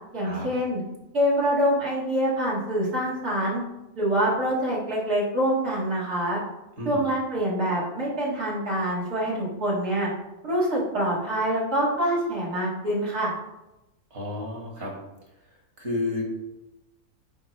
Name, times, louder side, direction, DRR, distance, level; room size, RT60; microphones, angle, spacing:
voice 1, 0.1-0.8 1.1-3.6 4.0-6.4 6.8-10.1 10.4-13.3, equal, 80° right, -6 dB, 2.5 m, -25 dB
voice 2, 14.1-14.9 15.8-16.3, left 2 dB, 50° right, -1 dB, 1.9 m, -31 dB
9.9 x 4.3 x 3.2 m, 0.95 s
omnidirectional pair, 1.6 m